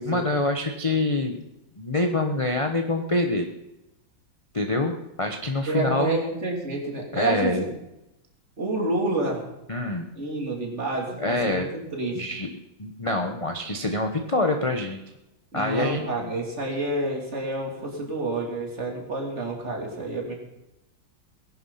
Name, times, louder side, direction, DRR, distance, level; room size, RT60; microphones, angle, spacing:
voice 1, 0.0-1.4 1.8-3.5 4.5-6.1 7.1-7.6 9.7-10.1 11.2-11.7 12.1-12.5 12.8-15.0 15.5-16.3, left 2 dB, 25° left, 4 dB, 0.7 m, -26 dB
voice 2, 5.7-7.7 8.6-9.4 10.1-12.2 15.5-20.3, right 2 dB, 35° right, 0 dB, 3.3 m, -28 dB
19.0 x 11.0 x 5.7 m, 0.91 s
omnidirectional pair, 2.2 m